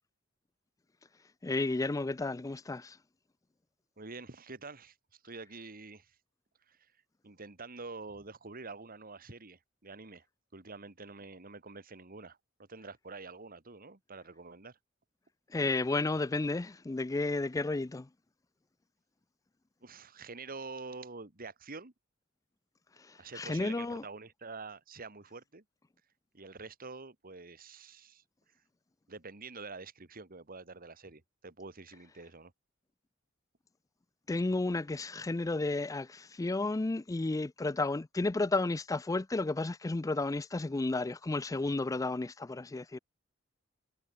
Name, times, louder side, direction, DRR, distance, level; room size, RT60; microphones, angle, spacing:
voice 1, 1.4-3.0 15.5-18.1 23.0-24.0 34.3-43.0, left 2 dB, 15° left, 0.4 m, -32 dB
voice 2, 4.0-6.2 6.7-6.9 7.2-10.3 10.5-14.8 19.8-21.9 23.2-25.6 26.3-28.2 29.1-32.5, right 3 dB, 45° right, 2.1 m, -47 dB
head